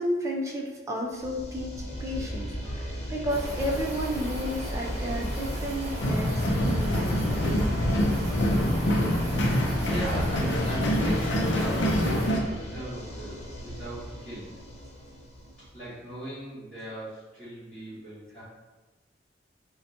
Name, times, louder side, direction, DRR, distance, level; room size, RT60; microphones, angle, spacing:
voice 1, 0.0-1.7 2.0-7.5, equal, 15° right, -2 dB, 0.5 m, -32 dB
sound 1, 1.1-15.9, equal, 35° left, 0.6 m, -37 dB
voice 2, 2.0-3.1 9.2-14.5 15.7-18.4, right 1 dB, 5° left, -17 dB, 1.4 m, -39 dB
sound 2, 3.3-12.3, equal, 35° right, 1.0 m, -35 dB
sound 3, 6.0-12.4, equal, 80° left, 0.5 m, -26 dB
4.1 x 2.2 x 2.7 m, 1.2 s
head